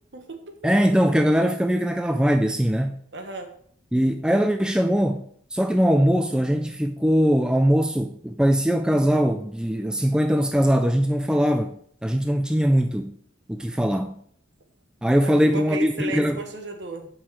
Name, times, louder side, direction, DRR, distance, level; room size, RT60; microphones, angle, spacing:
voice 1, 0.1-0.5 3.1-3.5 15.2-17.1, right 2 dB, 65° right, 1.3 m, -34 dB
voice 2, 0.6-3.0 3.9-5.2 5.5-11.7 12.0-13.1 13.5-14.2 15.0-16.4, equal, 5° right, 0.3 m, -21 dB
8.7 x 5.4 x 4.7 m
head